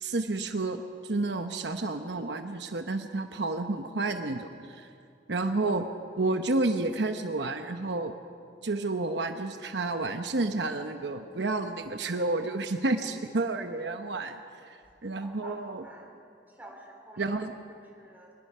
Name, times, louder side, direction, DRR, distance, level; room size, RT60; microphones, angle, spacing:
voice 1, 0.0-4.9 5.3-5.8 6.2-8.1 8.6-15.8 17.2-17.5, right 2 dB, 70° right, 6 dB, 0.9 m, -30 dB
voice 2, 15.2-16.1 16.5-17.3 17.7-18.3, right 1 dB, 10° right, 0 dB, 3.4 m, -49 dB
24.0 x 20.5 x 5.6 m, 2.5 s
head